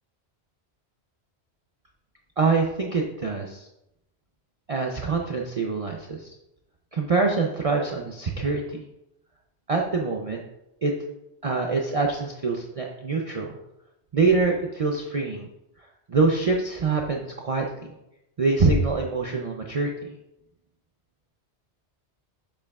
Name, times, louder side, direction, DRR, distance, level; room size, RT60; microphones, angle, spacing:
voice 1, 2.4-3.7 4.7-6.3 6.9-8.8 9.7-10.4 10.8-10.9 11.4-13.5 14.1-15.5 16.1-17.7 18.4-19.9, right 4 dB, 40° right, 0 dB, 0.6 m, -24 dB
7.6 x 6.8 x 2.4 m, 0.88 s
omnidirectional pair, 1.1 m